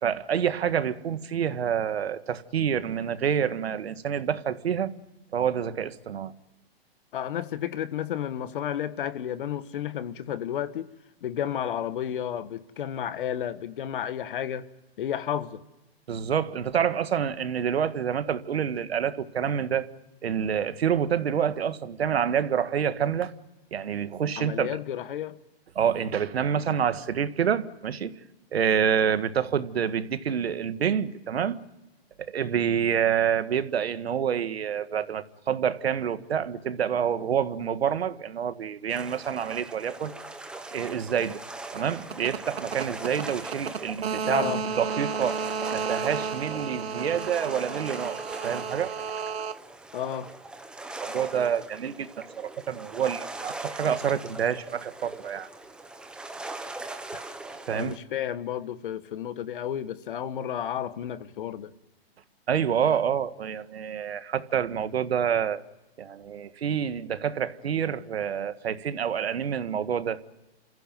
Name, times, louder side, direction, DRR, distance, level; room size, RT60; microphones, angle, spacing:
voice 1, 0.0-4.9 5.3-6.3 16.1-19.9 20.2-23.3 23.7-24.8 25.8-28.1 28.5-31.6 32.2-40.1 40.7-41.4 41.7-49.6 51.0-55.5 57.7-58.0 62.5-65.6 66.0-70.2, right 8 dB, 80° right, 1.8 m, -27 dB
voice 2, 7.1-10.9 11.2-14.7 15.0-15.6 24.4-25.4 44.3-44.6 49.9-50.3 57.7-61.7, left 10 dB, 55° left, 1.5 m, -32 dB
sound 1, 38.9-58.0, right 2 dB, 5° right, 1.0 m, -40 dB
28.5 x 15.0 x 9.2 m
hypercardioid pair, 150°, 31 cm